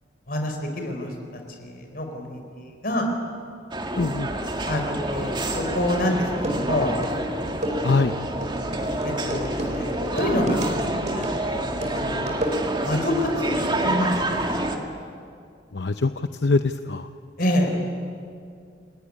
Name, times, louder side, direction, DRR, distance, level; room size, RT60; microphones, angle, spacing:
voice 1, 0.3-1.1 1.6-3.0 4.6-4.8 5.1-6.9 9.0-10.7 11.1-11.3 11.9-12.4 12.8-14.4 17.4-17.7, left 1 dB, 55° left, 3 dB, 4.8 m, -27 dB
sound 1, 3.7-14.8, right 1 dB, 25° right, 2.2 m, -28 dB
voice 2, 4.0-4.3 7.8-8.1 15.7-17.1, left 3 dB, 80° left, 9 dB, 0.7 m, -23 dB
sound 2, 5.9-6.0 6.3-13.0, equal, 40° right, 4.6 m, -31 dB
29.0 x 18.5 x 9.9 m, 2.4 s
head